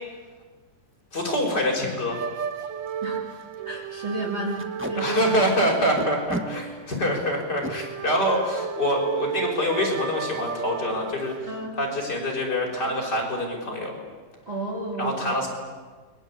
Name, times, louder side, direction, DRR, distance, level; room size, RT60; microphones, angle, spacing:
Packing tape duct tape, 0.9-1.1 1.6-1.7 1.9-2.0 2.5-2.6 2.9-3.0 3.4-3.6 4.6-4.9 6.0-6.5 7.4-7.7 9.3-9.5 9.8-10.0 10.3-10.7, equal, 10° right, 0.5 m, -33 dB
voice 1, 1.1-2.2 4.9-11.3 11.8-13.9 15.0-15.5, equal, 25° left, -1 dB, 6.2 m, -25 dB
sound 1, 2.1-11.7, right 7 dB, 85° right, 1.0 m, -33 dB
voice 2, 3.6-4.6 4.9-5.4 11.5-11.7 14.5-15.3, right 2 dB, 35° right, -1 dB, 4.0 m, -31 dB
29.5 x 23.0 x 8.8 m, 1.4 s
omnidirectional pair, 4.0 m